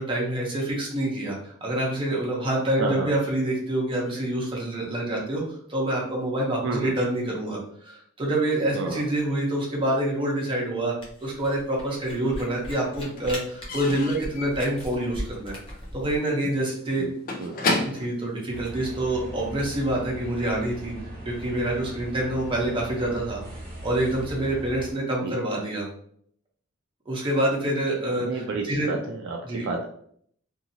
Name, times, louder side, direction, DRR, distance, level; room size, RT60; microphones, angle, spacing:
voice 1, 0.0-10.9 11.2-15.5 15.9-17.1 17.8-20.9 21.2-23.4 23.8-25.9 27.1-29.0 29.4-29.7, right 1 dB, 25° right, -3 dB, 0.9 m, -27 dB
voice 2, 2.8-3.1 6.6-6.9 8.7-9.0 17.0-17.1 17.4-17.5 25.2-25.4 28.2-29.9, right 3 dB, 65° right, 2 dB, 0.4 m, -30 dB
Camera, 11.0-16.2, equal, 25° left, 0.9 m, -38 dB
Slam / Squeak / Wood, 11.4-12.3 12.5-19.3, left 2 dB, 45° left, 0.5 m, -33 dB
sound 1, 18.5-24.9, right 1 dB, 40° right, 1.3 m, -39 dB
2.7 x 2.7 x 2.7 m, 0.64 s
head